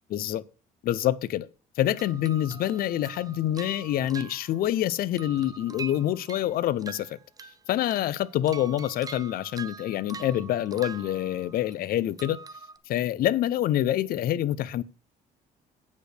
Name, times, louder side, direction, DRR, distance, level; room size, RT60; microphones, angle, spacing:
voice 1, 0.1-0.4 0.8-1.5 1.8-7.2 7.7-12.4 12.9-14.8, left 12 dB, 60° left, 0.6 m, -26 dB
sound 1, 2.0-4.9 5.2-7.6 7.9-11.7 12.2-12.8, right 5 dB, 20° right, 0.6 m, -44 dB
8.4 x 5.2 x 6.5 m
cardioid pair, 110°, 17 cm